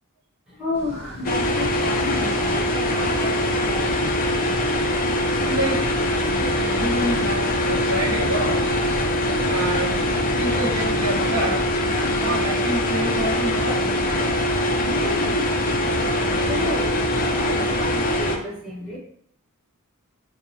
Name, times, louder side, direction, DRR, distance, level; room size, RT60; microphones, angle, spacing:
voice 1, 0.5-3.9 14.8-15.5 15.8-19.0, left 1 dB, 5° right, -9 dB, 1.1 m, -31 dB
sound 1, 0.7-13.1, equal, 50° right, 0.9 m, -41 dB
sound 2, 1.2-18.4, left 1 dB, 40° left, 0.4 m, -23 dB
voice 2, 4.0-5.8 6.4-8.8 9.5-10.1 10.4-11.6 11.9-13.8, right 1 dB, 80° right, -2 dB, 0.9 m, -28 dB
4.7 x 2.2 x 2.7 m, 0.65 s
head